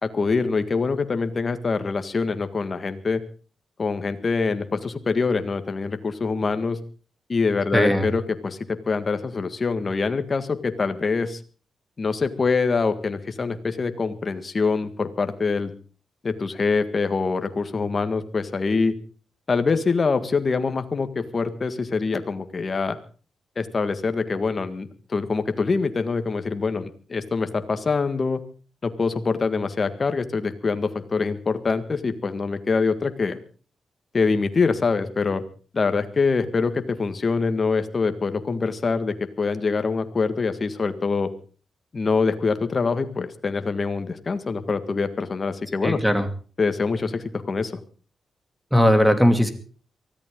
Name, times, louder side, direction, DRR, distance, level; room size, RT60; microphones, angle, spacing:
voice 1, 0.0-3.2 3.8-6.8 7.3-11.4 12.0-15.7 16.2-18.9 19.5-23.0 23.5-28.4 28.8-33.4 34.1-35.4 35.7-41.3 41.9-46.0 46.6-47.8, left 4 dB, 40° left, 9 dB, 1.7 m, -24 dB
voice 2, 7.7-8.1 45.8-46.3 48.7-49.5, equal, 5° right, 9 dB, 2.7 m, -18 dB
23.5 x 14.0 x 3.8 m, 0.39 s
cardioid pair, 85°, 0 cm